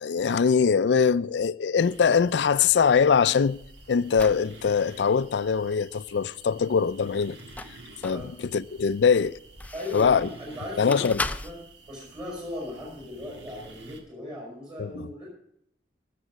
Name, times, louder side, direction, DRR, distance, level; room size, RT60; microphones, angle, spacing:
voice 1, 0.0-3.6 3.9-7.4 8.0-9.4 9.9-10.3 10.8-11.2 14.8-15.1, left 6 dB, 75° left, 0.4 m, -22 dB
sound 1, 1.8-14.0, right 2 dB, 90° right, 1.9 m, -50 dB
sound 2, 3.1-4.5 7.2-8.3 8.8-10.3 10.9-11.5, left 2 dB, 10° left, 0.4 m, -36 dB
voice 2, 9.7-11.6 11.9-15.3, left 1 dB, 30° right, 4.5 m, -37 dB
14.5 x 6.8 x 6.1 m
head